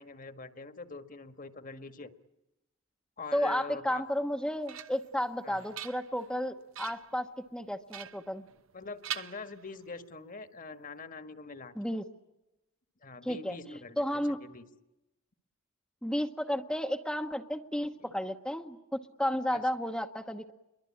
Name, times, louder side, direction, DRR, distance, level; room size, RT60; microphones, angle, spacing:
voice 1, 0.0-2.1 3.2-4.0 5.4-5.7 8.7-11.7 13.0-14.6 18.0-18.1 19.5-19.6, left 3 dB, 40° left, 9 dB, 1.6 m, -44 dB
voice 2, 3.3-7.3 7.5-8.5 11.8-12.0 13.2-14.4 16.0-18.8 19.2-20.5, equal, 5° left, 4 dB, 1.0 m, -32 dB
sound 1, 4.2-5.2 5.6-6.3 6.7-7.2 7.9-8.8 9.0-10.0, right 10 dB, 70° right, 1.0 m, -43 dB
29.0 x 23.5 x 8.6 m, 0.91 s
head